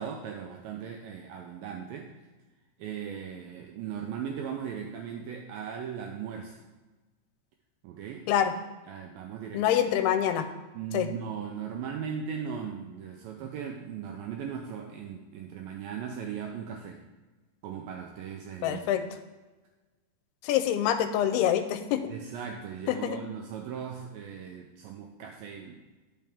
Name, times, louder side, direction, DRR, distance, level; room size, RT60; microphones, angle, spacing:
voice 1, 0.0-2.1 2.8-6.6 7.8-8.3 8.9-9.7 10.7-17.0 17.6-18.8 22.1-25.8, right 7 dB, 85° right, 2 dB, 2.1 m, -38 dB
voice 2, 9.5-10.5 10.9-11.1 18.6-19.0 20.4-22.1 22.9-23.2, left 10 dB, 85° left, 9 dB, 2.5 m, -26 dB
10.5 x 5.7 x 3.5 m, 1.2 s
omnidirectional pair, 4.7 m